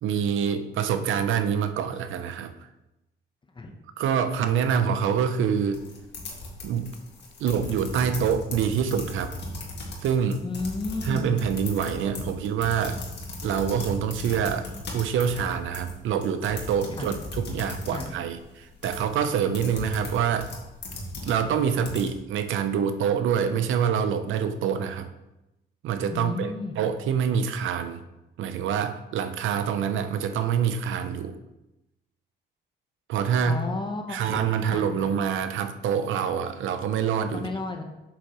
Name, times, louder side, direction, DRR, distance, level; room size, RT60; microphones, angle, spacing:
voice 1, 0.0-2.5 4.0-5.8 6.6-6.9 7.4-9.3 10.0-10.4 11.0-13.0 13.4-14.7 14.9-20.5 21.2-25.1 25.8-28.0 28.4-31.4 33.1-33.6 34.1-37.5, right 7 dB, 80° right, 10 dB, 0.6 m, -26 dB
sound 1, 5.7-22.1, left 1 dB, 60° left, 1.8 m, -37 dB
voice 2, 10.4-11.3 16.9-17.2 17.9-18.1 26.1-26.7 33.5-35.1 37.3-37.8, left 3 dB, 25° left, 4 dB, 0.8 m, -33 dB
7.3 x 6.6 x 3.0 m, 0.94 s
cardioid pair, 90°, 20 cm